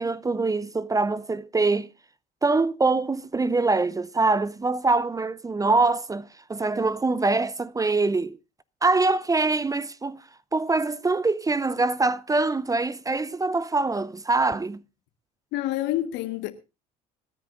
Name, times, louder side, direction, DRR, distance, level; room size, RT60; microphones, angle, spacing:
voice 1, 0.0-1.9 2.4-8.4 8.8-10.2 10.5-14.8, right 3 dB, 20° right, 0.6 m, -24 dB
voice 2, 15.5-16.5, left 14 dB, 70° left, 1.6 m, -27 dB
26.0 x 10.0 x 2.6 m
hypercardioid pair, 65°, 19 cm